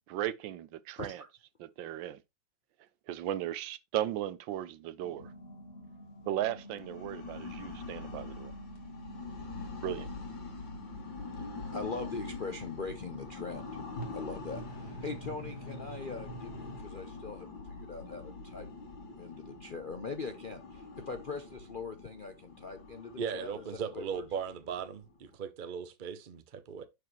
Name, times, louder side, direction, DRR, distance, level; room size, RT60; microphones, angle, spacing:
voice 1, 0.1-1.2 1.8-2.2 3.1-5.3 6.3-8.5 9.8-10.1, right 12 dB, 80° right, 1.4 m, -36 dB
voice 2, 1.0-1.3 11.7-13.8 14.1-18.7 19.2-23.6 23.9-24.2, left 4 dB, 55° left, 0.6 m, -41 dB
sound 1, 5.0-16.8, right 1 dB, 35° left, 2.7 m, -48 dB
sound 2, 6.6-25.3, left 4 dB, 80° left, 2.7 m, -45 dB
voice 3, 23.2-26.8, right 7 dB, 55° right, 0.5 m, -38 dB
11.5 x 4.8 x 3.1 m
omnidirectional pair, 2.0 m